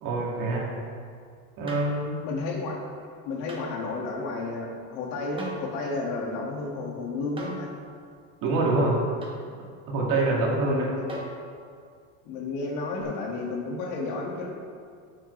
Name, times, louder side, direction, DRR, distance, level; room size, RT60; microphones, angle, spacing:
voice 1, 0.0-0.7 1.6-2.1 8.4-9.0 9.9-10.9, right 2 dB, 50° right, -3 dB, 2.4 m, -25 dB
sound 1, 1.7-2.0 3.5-3.7 5.4-5.7 7.4-7.7 9.2-9.4 11.1-11.5 13.0-13.1, right 1 dB, 15° right, 1.3 m, -40 dB
voice 2, 2.2-2.8 3.3-7.7 10.3-11.1 12.2-14.5, left 3 dB, 75° left, -1 dB, 2.2 m, -32 dB
12.0 x 7.5 x 3.3 m, 2.2 s
cardioid pair, 150°, 40 cm